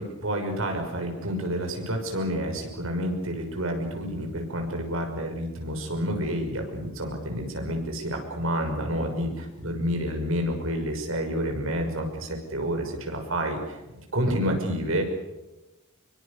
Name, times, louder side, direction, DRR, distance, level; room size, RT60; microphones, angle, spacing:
voice 1, 0.2-15.0, equal, 75° right, 4 dB, 6.1 m, -29 dB
25.0 x 23.5 x 6.9 m, 1.0 s
head